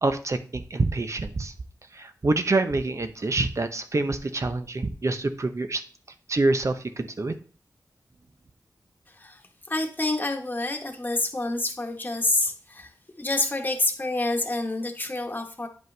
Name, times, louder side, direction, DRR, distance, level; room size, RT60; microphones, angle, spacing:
voice 1, 0.0-1.5 1.9-5.8 6.3-7.3, right 2 dB, 45° right, 9 dB, 0.8 m, -26 dB
voice 2, 9.1-9.4 9.7-12.9 13.2-15.7, left 2 dB, 25° left, 3 dB, 1.2 m, -27 dB
9.3 x 5.2 x 3.3 m, 0.41 s
wide cardioid pair, 65°, 7 cm